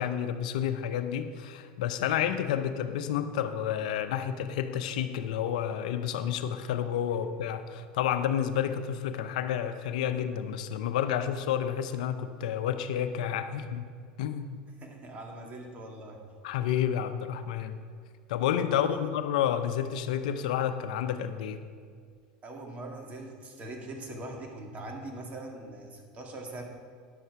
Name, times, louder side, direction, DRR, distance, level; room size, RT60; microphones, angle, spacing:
voice 1, 0.0-13.9 14.2-14.5 16.4-17.8 18.3-21.6, left 9 dB, 75° left, 10 dB, 0.6 m, -30 dB
voice 2, 14.8-16.3 18.7-19.1 22.4-26.6, right 2 dB, 35° right, 2 dB, 2.1 m, -42 dB
11.0 x 7.8 x 4.8 m, 2.1 s
hypercardioid pair, 90°, 4 cm